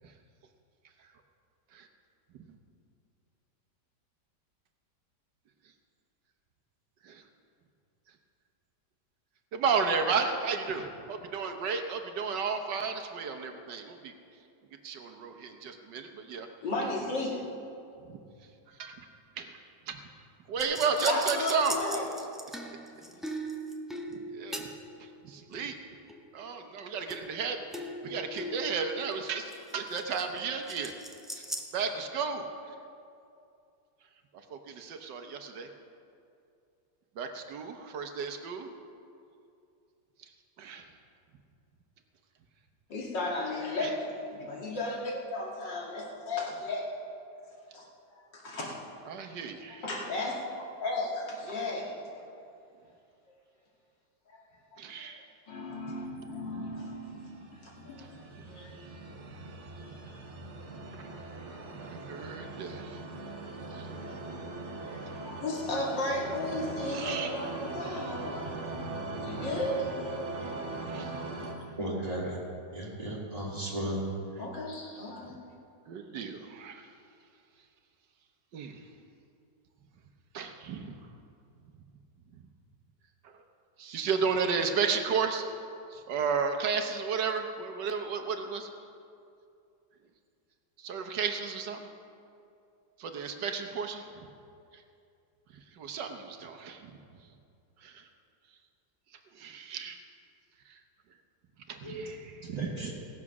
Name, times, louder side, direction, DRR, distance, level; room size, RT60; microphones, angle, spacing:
voice 1, 9.5-14.1 14.8-16.5 18.1-18.2 18.7-19.1 19.4-19.6 19.9-20.0 20.5-21.8 24.1-24.7 25.0-25.8 26.3-27.6 28.0-30.9 31.3-31.4 31.7-32.5 34.5-35.7 37.2-38.7 40.6-40.8 43.8-43.9 49.1-49.8 54.8-55.2 56.4-56.8 58.0-58.1 58.4-58.5 61.0-61.1 61.8-63.0 63.7-63.9 66.9-67.3 70.4-70.5 70.9-71.3 71.6-71.8 75.9-76.9 78.5-78.8 80.3-81.0 83.2-83.3 83.8-85.4 85.9-88.7 90.8-91.9 93.0-94.1 94.7-94.8 95.7-97.0 97.8-98.1 99.3-100.0 100.7-100.8 101.7-102.9, right 5 dB, 75° right, 5 dB, 1.6 m, -33 dB
voice 2, 16.6-17.4 21.1-22.0 23.1-23.2 42.9-46.9 47.7-47.8 48.3-48.8 49.8-50.4 50.8-51.9 54.3-54.4 55.1-55.2 55.5-58.1 58.5-58.7 64.9-68.5 69.2-70.1 71.2-71.5 74.4-75.4, left 2 dB, 80° left, -3 dB, 2.8 m, -34 dB
sound 1, 20.6-25.0 25.5-26.4 27.1-27.4 27.7-30.4 30.7-31.6, right 1 dB, ahead, 0.4 m, -39 dB
sound 2, 57.2-71.5, right 2 dB, 45° right, 1.3 m, -40 dB
voice 3, 71.8-72.4 72.7-74.0 101.8-102.0 102.5-102.9, right 1 dB, 20° right, -5 dB, 2.9 m, -35 dB
18.0 x 7.3 x 6.0 m, 2.5 s
omnidirectional pair, 1.9 m